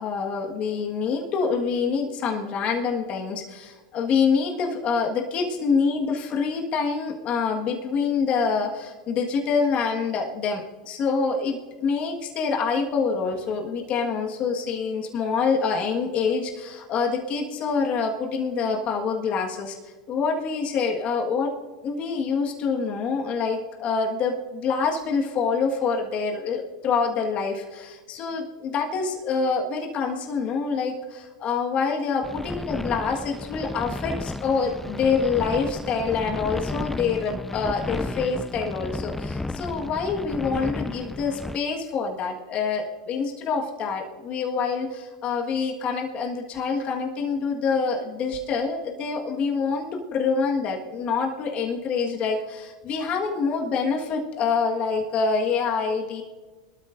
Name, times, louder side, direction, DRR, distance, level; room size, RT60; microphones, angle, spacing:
voice 1, 0.0-19.8 20.1-21.5 21.8-56.2, left 5 dB, 40° left, 1 dB, 1.6 m, -26 dB
sound 1, 32.2-41.6, left 2 dB, 5° left, 0.4 m, -33 dB
23.0 x 12.5 x 2.6 m, 1.4 s
hypercardioid pair, 115°, 3 cm